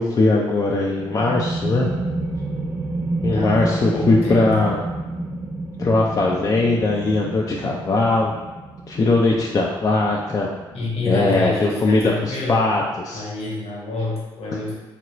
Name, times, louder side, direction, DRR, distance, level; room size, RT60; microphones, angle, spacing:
voice 1, 0.0-1.9 3.2-4.8 5.8-8.3 8.9-10.5 11.1-12.1 12.5-13.2, left 2 dB, 35° left, -2 dB, 0.4 m, -20 dB
sound 1, 0.9-12.3, right 2 dB, 20° right, 0.5 m, -30 dB
voice 2, 3.3-4.6 10.7-12.7 13.1-14.7, left 2 dB, 60° left, -3 dB, 1.0 m, -27 dB
2.9 x 2.5 x 3.0 m, 1.2 s
hypercardioid pair, 55°, 11 cm